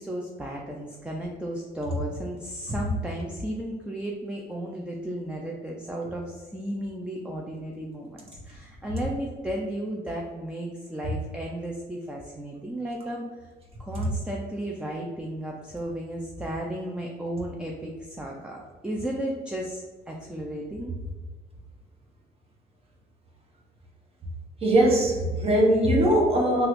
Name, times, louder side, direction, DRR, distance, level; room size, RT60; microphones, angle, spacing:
voice 1, 0.0-13.5 13.8-21.0, right 1 dB, 5° right, -1 dB, 0.3 m, -34 dB
voice 2, 24.6-26.7, right 1 dB, 35° right, -2 dB, 0.8 m, -20 dB
3.0 x 2.4 x 3.0 m, 1.3 s
cardioid pair, 110°, 17 cm